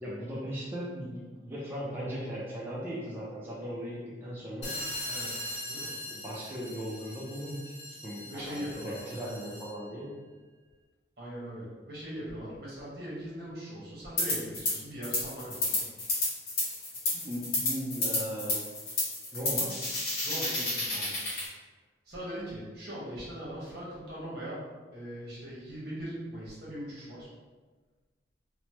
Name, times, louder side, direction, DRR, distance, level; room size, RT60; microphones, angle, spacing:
voice 1, 0.0-4.8 6.1-7.7 8.0-10.2 17.1-18.6 19.3-19.8, equal, 10° right, -7 dB, 0.4 m, -38 dB
sound 1, 4.6-9.8, left 1 dB, 75° left, 0.6 m, -40 dB
voice 2, 5.1-5.9 8.3-9.1 11.2-15.9 20.2-21.2 22.0-24.6 24.9-27.3, equal, 55° right, -7 dB, 1.1 m, -40 dB
sound 2, 14.2-14.7 15.0-21.5, left 2 dB, 55° left, 0.9 m, -30 dB
3.0 x 2.1 x 2.8 m, 1.3 s
head